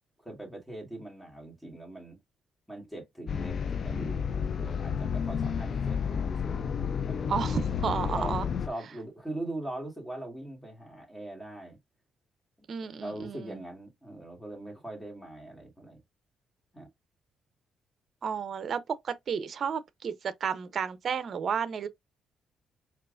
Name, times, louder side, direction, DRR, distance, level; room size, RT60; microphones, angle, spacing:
voice 1, 0.2-2.2 2.7-7.3 8.1-8.3 8.7-11.8 13.0-16.0 16.7-16.9, right 1 dB, 5° left, 1.8 m, -41 dB
sound 1, 3.3-8.7, left 7 dB, 55° left, 0.4 m, -31 dB
voice 2, 7.3-8.5 12.7-13.6 18.2-21.9, right 7 dB, 55° right, 0.6 m, -32 dB
4.5 x 2.4 x 2.5 m
cardioid pair, 90°, 0 cm